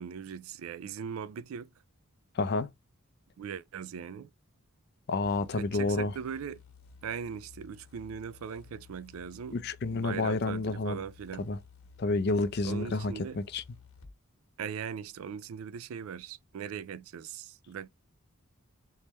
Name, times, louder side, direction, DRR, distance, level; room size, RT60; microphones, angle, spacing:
voice 1, 0.0-1.7 3.4-4.3 5.6-6.6 7.0-9.6 9.9-11.5 12.6-13.4 14.6-17.9, right 7 dB, 75° right, 0.3 m, -39 dB
voice 2, 2.3-2.7 5.1-6.1 9.5-11.0 11.4-11.6 12.0-13.6, left 3 dB, 50° left, 0.5 m, -30 dB
sound 1, 5.2-14.1, left 6 dB, 80° left, 1.4 m, -55 dB
4.2 x 3.5 x 3.0 m
head